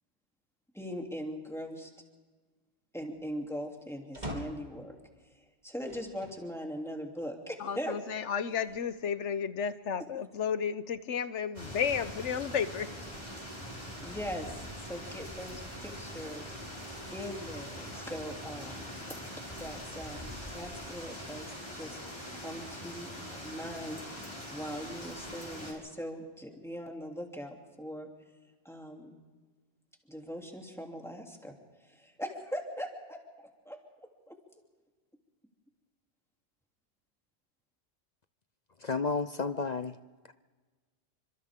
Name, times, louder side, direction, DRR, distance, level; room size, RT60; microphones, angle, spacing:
voice 1, 0.7-1.9 2.9-5.0 5.3-8.0 14.0-16.6 17.1-18.9 19.6-22.0 22.3-28.1 28.6-29.2 30.1-31.5 31.8-34.4, equal, ahead, 0 dB, 3.1 m, -41 dB
sound 1, 4.1-4.8 5.8-6.4 7.0-7.1 8.4-9.2, equal, 35° right, 3.5 m, -43 dB
voice 2, 7.6-12.9, left 7 dB, 75° left, 13 dB, 1.3 m, -32 dB
sound 2, 11.5-25.7, equal, 25° left, 5.9 m, -43 dB
voice 3, 38.8-40.0, left 4 dB, 45° left, 11 dB, 0.7 m, -31 dB
29.0 x 25.5 x 3.8 m, 1.4 s
omnidirectional pair, 1.2 m